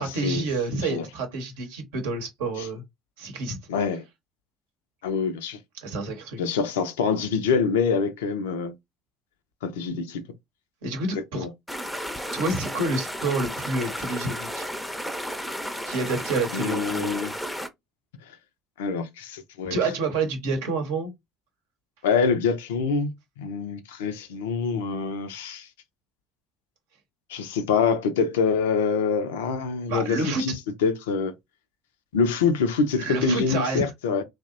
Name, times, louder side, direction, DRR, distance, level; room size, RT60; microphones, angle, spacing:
voice 1, 0.0-2.8 3.2-3.6 5.8-6.4 10.8-11.4 12.3-14.7 15.9-17.1 19.7-21.1 29.9-30.4 33.0-33.8, right 3 dB, 75° right, 0.8 m, -28 dB
voice 2, 3.7-4.0 5.0-5.6 6.4-8.7 9.6-10.2 11.1-11.5 16.5-17.3 18.8-19.8 22.0-25.7 27.3-30.5 30.8-31.3 32.1-34.2, left 5 dB, 75° left, 0.4 m, -25 dB
sound 1, 11.7-17.7, equal, 5° left, 0.5 m, -33 dB
2.7 x 2.0 x 2.4 m
figure-of-eight pair, 55°, 0 cm